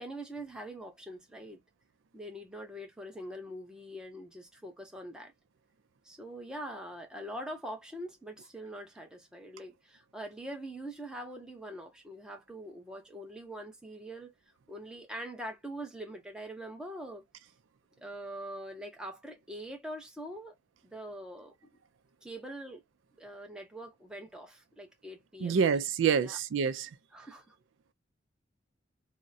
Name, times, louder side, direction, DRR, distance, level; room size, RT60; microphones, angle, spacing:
voice 1, 0.0-1.6 2.1-5.3 6.0-14.3 14.7-17.2 18.0-20.5 20.8-21.7 22.2-22.8 23.2-25.7 26.2-26.4 27.1-27.6, right 1 dB, 5° right, 0.7 m, -43 dB
voice 2, 25.4-26.9, right 6 dB, 85° right, 0.4 m, -27 dB
3.5 x 2.1 x 2.6 m
head